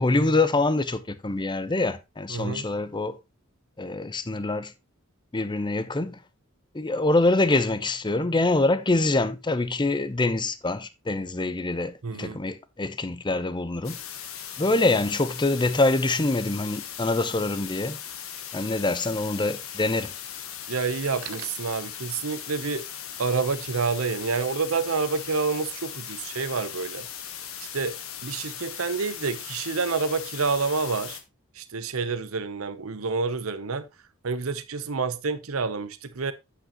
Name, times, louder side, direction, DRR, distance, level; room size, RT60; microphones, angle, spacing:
voice 1, 0.0-3.2 3.8-4.7 5.3-6.2 6.7-14.0 14.6-18.0 18.5-20.1, left 2 dB, 20° left, 0.7 m, -25 dB
voice 2, 2.3-2.6 12.0-12.4 20.7-22.8 23.2-27.1 27.7-27.9 28.2-31.2 31.6-33.9 34.2-36.3, right 4 dB, 80° right, 0.8 m, -28 dB
sound 1, 13.8-31.2, left 9 dB, 80° left, 1.3 m, -38 dB
8.7 x 8.1 x 3.0 m
head